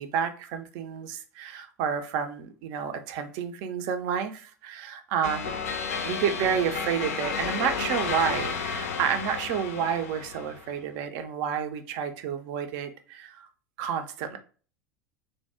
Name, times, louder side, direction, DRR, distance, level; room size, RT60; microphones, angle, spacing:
voice 1, 0.0-5.6 6.0-13.5 13.8-14.4, right 8 dB, 45° right, 7 dB, 0.4 m, -30 dB
sound 1, 5.2-10.7, left 6 dB, 65° left, 0.4 m, -32 dB
2.6 x 2.0 x 3.3 m, 0.39 s
figure-of-eight pair, 80°, 9 cm